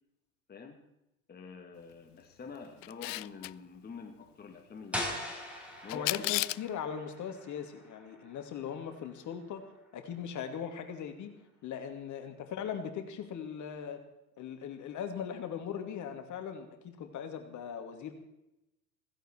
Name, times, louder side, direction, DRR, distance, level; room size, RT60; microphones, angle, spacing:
voice 1, 0.5-0.8 1.3-5.2 5.8-6.4, left 5 dB, 20° left, 3 dB, 2.0 m, -47 dB
Camera, 2.8-3.5 5.9-6.7, left 20 dB, 50° left, 0.5 m, -32 dB
sound 1, 4.9-10.6, left 1 dB, ahead, 4.5 m, -43 dB
voice 2, 5.9-9.6 9.9-11.3 11.6-14.0 14.4-18.2, left 8 dB, 35° left, 7 dB, 2.4 m, -39 dB
16.0 x 15.5 x 4.5 m, 0.90 s
figure-of-eight pair, 85°, 49 cm